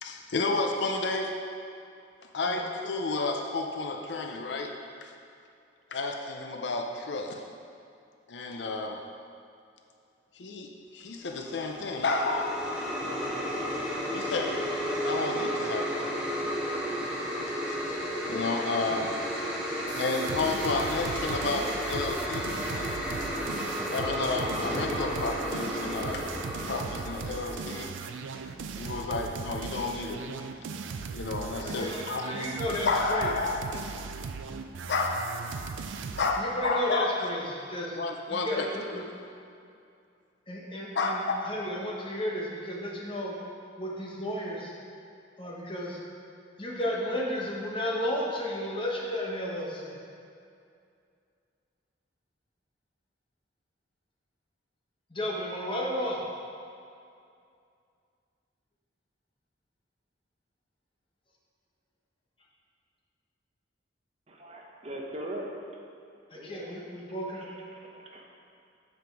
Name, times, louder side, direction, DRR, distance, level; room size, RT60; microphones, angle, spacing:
voice 1, 0.0-1.4 2.3-4.7 5.0-5.1 5.9-7.4 8.3-9.1 10.3-13.4 14.1-14.7 15.0-16.1 17.6-17.8 18.2-19.5 20.0-22.5 23.9-26.3 26.7-28.0 28.7-30.3 31.1-32.2 32.8-34.0 34.9-35.8 36.2-37.3 38.0-38.6 38.9-39.0 40.9-41.4, left 3 dB, 65° left, 3 dB, 0.5 m, -31 dB
sound 1, 11.3-27.8, equal, 5° right, 0.8 m, -33 dB
sound 2, 19.9-36.4, right 5 dB, 85° right, 0.4 m, -38 dB
voice 2, 31.6-33.3 36.3-38.0 38.3-39.0 40.5-43.3 43.8-44.7 45.4-46.0 46.6-50.0 55.1-56.2 66.3-67.5, equal, 25° left, -3 dB, 1.0 m, -33 dB
voice 3, 64.3-65.5 66.3-67.0 67.9-68.2, right 1 dB, 35° right, -1 dB, 0.8 m, -40 dB
7.8 x 5.1 x 4.6 m, 2.5 s
head